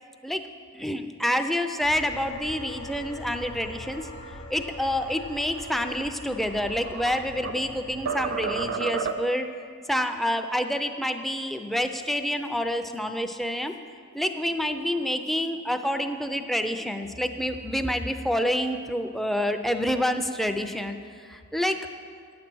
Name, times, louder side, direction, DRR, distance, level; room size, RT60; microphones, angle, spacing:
voice 1, 0.7-4.1 4.5-9.5 9.9-13.8 14.1-21.0 21.3-21.8, equal, ahead, 6 dB, 0.4 m, -28 dB
sound 1, 1.8-8.7, left 1 dB, 80° left, 0.8 m, -42 dB
sound 2, 6.3-7.7 8.1-9.5, right 5 dB, 60° right, 0.5 m, -31 dB
9.5 x 8.6 x 6.1 m, 2.2 s
head